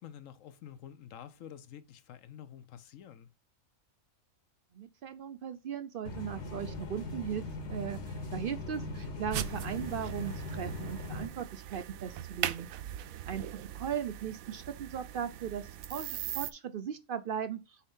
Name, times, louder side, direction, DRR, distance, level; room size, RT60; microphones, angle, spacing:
voice 1, 0.0-3.3, left 9 dB, 75° left, 1.0 m, -49 dB
voice 2, 4.7-12.7 13.3-17.9, right 8 dB, 65° right, 0.5 m, -38 dB
sound 1, 6.0-11.2, left 2 dB, 55° left, 1.3 m, -40 dB
sound 2, 9.3-16.5, right 11 dB, 90° right, 1.0 m, -40 dB
4.7 x 4.3 x 5.3 m
omnidirectional pair, 1.4 m